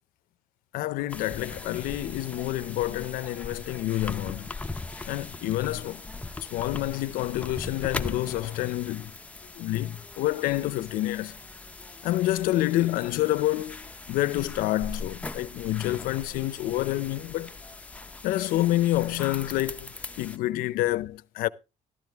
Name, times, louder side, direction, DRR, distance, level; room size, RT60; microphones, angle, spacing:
voice 1, 0.7-4.5 5.1-6.0 6.5-9.1 9.6-11.4 12.0-17.5 18.2-19.9 20.2-21.5, left 16 dB, 85° left, 0.5 m, -28 dB
sound 1, 1.1-20.4, left 3 dB, 10° left, 0.6 m, -40 dB
12.5 x 12.5 x 3.4 m
cardioid pair, 170°, 14 cm